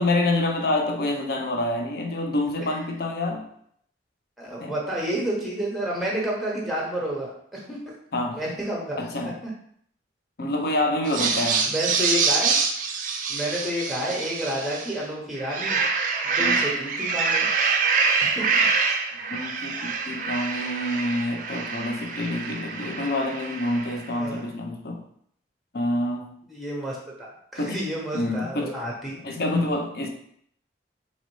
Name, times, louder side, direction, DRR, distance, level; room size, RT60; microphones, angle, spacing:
voice 1, 0.0-3.5 4.6-4.7 8.1-8.4 9.0-9.3 10.4-11.6 16.4-16.6 19.3-25.0 25.7-26.3 27.6-27.8 28.1-28.7 29.2-30.1, left 1 dB, 50° left, 3 dB, 0.5 m, -27 dB
voice 2, 4.4-7.8 8.3-9.0 9.4-9.5 11.3-12.7 13.3-15.8 16.2-17.5 18.2-18.5 24.1-24.4 26.4-29.2, equal, ahead, -3 dB, 0.8 m, -30 dB
sound 1, 11.1-15.0 15.4-24.0, right 5 dB, 45° right, 0.4 m, -26 dB
4.0 x 3.0 x 3.0 m, 0.66 s
head